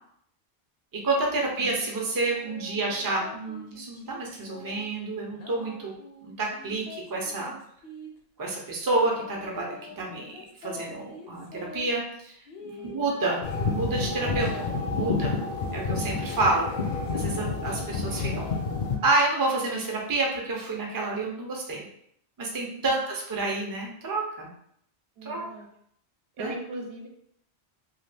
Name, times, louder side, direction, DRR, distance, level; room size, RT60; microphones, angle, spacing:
voice 1, 1.0-5.9 6.2-7.6 8.4-12.3 12.6-13.4 13.7-15.4 15.7-16.7 17.1-18.4 19.0-21.9 22.4-24.5 25.2-25.4 26.4-26.5, right 2 dB, 25° right, -1 dB, 0.5 m, -29 dB
sound 1, 1.9-4.9 5.3-8.1 8.9-11.9 12.5-15.4 15.9-18.6, left 3 dB, 70° left, 0.8 m, -45 dB
sound 2, 13.4-19.0, left 4 dB, 50° left, 0.4 m, -29 dB
voice 2, 25.2-25.7 26.4-27.1, right 2 dB, 70° right, 2 dB, 0.8 m, -39 dB
2.7 x 2.5 x 3.3 m, 0.70 s
omnidirectional pair, 1.1 m